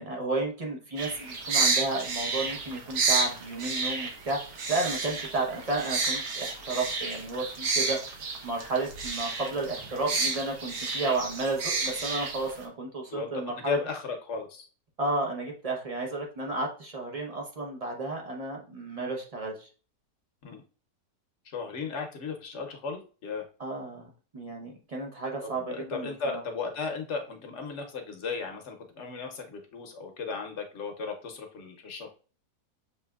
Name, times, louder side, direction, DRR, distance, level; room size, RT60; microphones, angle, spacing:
voice 1, 0.0-4.4 4.7-13.8 15.0-19.7 23.6-26.4, right 2 dB, 35° right, 0 dB, 0.6 m, -32 dB
sound 1, 1.0-12.6, right 4 dB, 70° right, 1.2 m, -31 dB
voice 2, 13.1-14.7 20.4-20.6 21.5-23.4 25.4-32.1, left 4 dB, 55° left, 4 dB, 0.9 m, -36 dB
6.4 x 2.8 x 2.3 m, 0.37 s
omnidirectional pair, 1.7 m